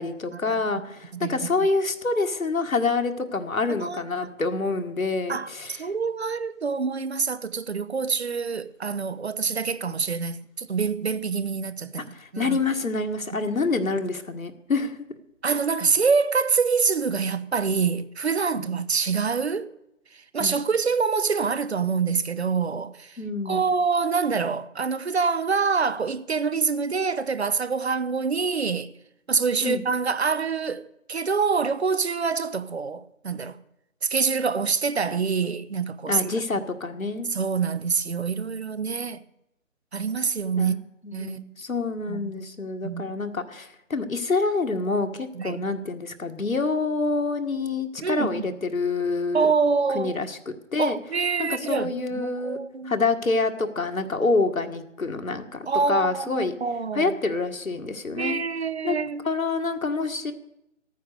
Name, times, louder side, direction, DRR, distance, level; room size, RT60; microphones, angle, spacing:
voice 1, 0.0-5.8 11.2-11.3 12.1-15.0 20.4-20.6 23.2-23.7 29.6-29.8 36.1-37.3 40.6-49.5 49.9-51.0 51.4-52.6 52.8-56.5 56.9-58.4 58.8-58.9 59.2-60.3, left 3 dB, 85° left, 1.7 m, -27 dB
voice 2, 3.7-4.0 5.3-12.6 13.5-13.6 15.4-19.7 20.1-23.2 23.5-28.9 29.3-33.6 34.0-36.4 37.3-39.2 39.9-40.8 41.1-41.4 42.1-42.5 42.8-43.1 45.3-45.6 48.0-48.5 49.3-50.2 50.8-52.9 55.7-57.2 58.2-59.3, right 5 dB, 55° right, 0.7 m, -26 dB
14.5 x 9.3 x 6.5 m
figure-of-eight pair, 160°, 40 cm